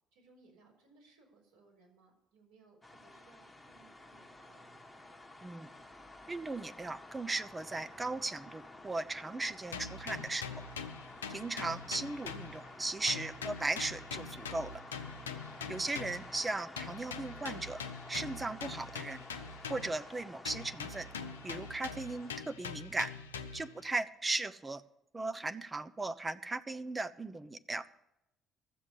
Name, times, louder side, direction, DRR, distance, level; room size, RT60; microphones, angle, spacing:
voice 1, 0.1-4.7 15.4-15.8 23.6-23.9, right 4 dB, 75° right, -3 dB, 4.4 m, -64 dB
sound 1, 2.8-22.4, left 2 dB, 10° left, 1.4 m, -51 dB
voice 2, 6.3-10.4 11.3-14.8 15.7-17.8 18.1-19.2 19.7-21.1 21.4-23.1 23.5-24.8 25.1-27.8, right 3 dB, 20° right, 13 dB, 0.7 m, -37 dB
sound 2, 9.7-12.8 13.1-16.3 16.8-20.1 20.4-23.8, left 6 dB, 85° left, 0.6 m, -43 dB
13.0 x 7.4 x 8.4 m, 0.85 s
figure-of-eight pair, 50°, 0 cm